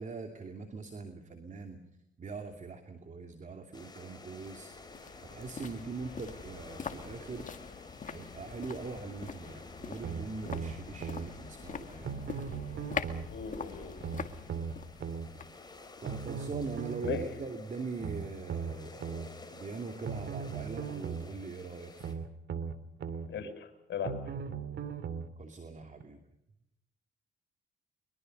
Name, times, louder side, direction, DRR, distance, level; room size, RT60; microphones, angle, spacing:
voice 1, 0.0-1.8 2.2-4.7 5.2-7.5 8.1-12.3 16.0-19.0 19.5-22.2 25.4-26.2, right 4 dB, 40° right, 6 dB, 2.8 m, -42 dB
sound 1, 3.7-22.1, left 3 dB, 20° left, 4.7 m, -52 dB
sound 2, 3.8-16.9 17.2-17.3, left 6 dB, 40° left, 2.0 m, -44 dB
sound 3, 10.0-11.3 12.0-13.3 14.0-15.3 16.0-17.3 18.0-19.3 20.0-21.3 22.0-23.3 24.0-25.3 26.0-26.1, right 6 dB, 60° right, 2.5 m, -38 dB
voice 2, 13.3-13.9 17.0-17.2 23.2-24.1, left 6 dB, 65° left, 6 dB, 6.9 m, -37 dB
23.5 x 22.5 x 6.7 m, 0.83 s
cardioid pair, 90°, 20 cm